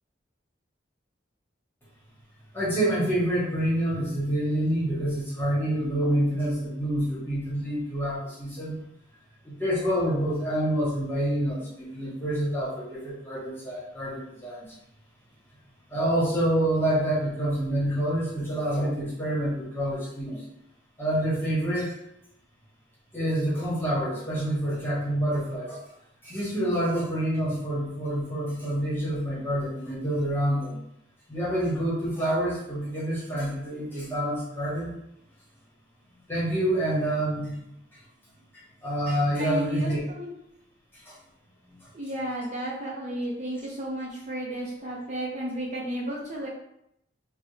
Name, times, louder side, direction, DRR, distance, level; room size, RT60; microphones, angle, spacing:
voice 1, 2.5-8.7 9.4-14.7 15.9-20.5 21.0-21.9 23.1-25.8 26.2-30.8 31.3-34.9 36.3-37.6 38.8-40.0 41.0-41.1 41.6-41.7, right 1 dB, 10° left, -7 dB, 1.0 m, -27 dB
voice 2, 39.4-40.3 41.9-46.5, right 1 dB, 40° right, -3 dB, 0.5 m, -33 dB
3.4 x 2.0 x 3.1 m, 0.79 s
head